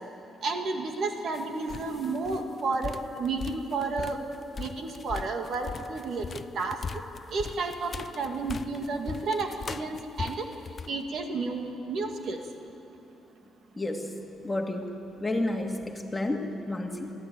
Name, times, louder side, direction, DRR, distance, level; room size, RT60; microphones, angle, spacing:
voice 1, 0.4-4.2 4.6-6.2 6.6-6.8 7.3-10.5 10.9-12.4, right 3 dB, 60° right, 4 dB, 2.2 m, -31 dB
sound 1, 1.3-1.4 1.7-10.9, left 5 dB, 40° left, 0.5 m, -39 dB
voice 2, 13.8-17.1, left 1 dB, 15° left, 2 dB, 2.3 m, -31 dB
22.5 x 14.5 x 9.1 m, 2.8 s
cardioid pair, 90°, 0 cm